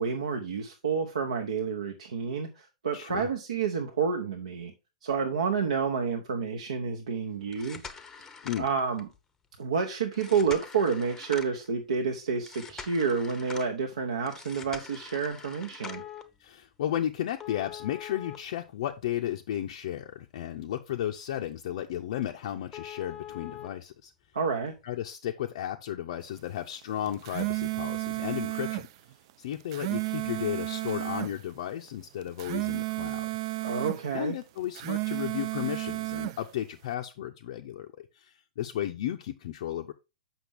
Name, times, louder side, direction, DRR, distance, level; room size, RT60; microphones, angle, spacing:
voice 1, 0.0-4.7 5.0-7.9 8.6-9.1 9.6-16.0 24.3-24.7 33.6-34.3, right 5 dB, 65° right, 3 dB, 0.9 m, -29 dB
voice 2, 2.9-3.3 8.4-8.6 16.4-24.1 24.8-28.9 29.4-33.3 34.1-39.9, left 11 dB, 50° left, 3 dB, 0.5 m, -34 dB
sound 1, 7.4-9.2 10.1-11.7 12.5-13.7 14.3-16.2 17.4-19.3 19.7-19.8 20.3-20.4 20.9-21.0 21.3-21.4 21.8-21.9 22.2-22.3 22.7-23.7 24.8-24.9, left 7 dB, 10° left, 0.7 m, -44 dB
sound 2, 27.1-28.9 29.5-31.3 32.2-34.0 34.6-36.4, right 21 dB, 40° right, 0.3 m, -32 dB
7.1 x 5.8 x 3.4 m, 0.27 s
figure-of-eight pair, 110°, 4 cm